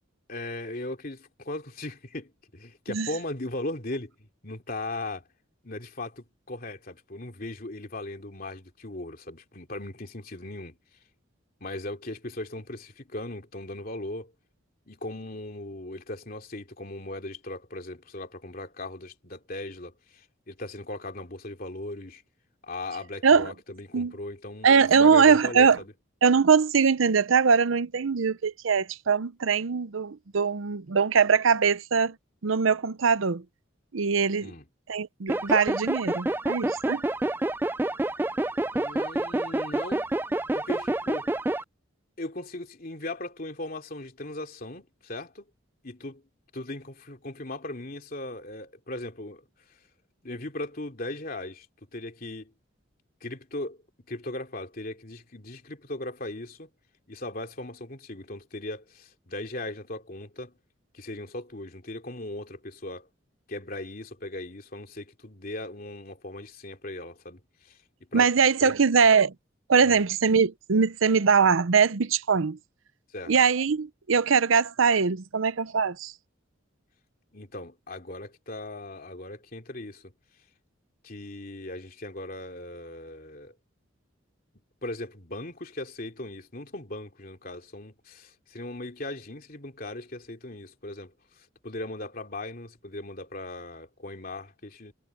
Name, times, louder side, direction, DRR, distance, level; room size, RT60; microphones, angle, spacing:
voice 1, 0.3-5.2 5.6-10.7 11.6-14.3 14.9-22.2 22.6-24.7 24.9-25.9 34.4-34.6 38.7-40.1 40.5-41.3 42.2-45.5 45.8-46.2 46.5-49.4 50.2-51.7 51.9-52.5 53.2-53.8 54.1-56.7 57.1-60.5 60.9-63.1 63.5-67.8 68.1-68.3 68.6-68.7 69.8-70.0 73.1-73.3 77.3-80.1 81.0-83.5 84.8-91.1 91.6-94.9, left 2 dB, 45° left, 3.0 m, -38 dB
voice 2, 23.2-23.5 23.9-24.1 24.6-25.8 26.2-32.1 32.4-33.4 33.9-34.5 34.9-37.0 68.1-69.3 69.7-72.6 73.3-76.1, right 6 dB, 85° right, 0.7 m, -22 dB
sound 1, 35.3-41.6, right 1 dB, 10° right, 0.3 m, -28 dB
head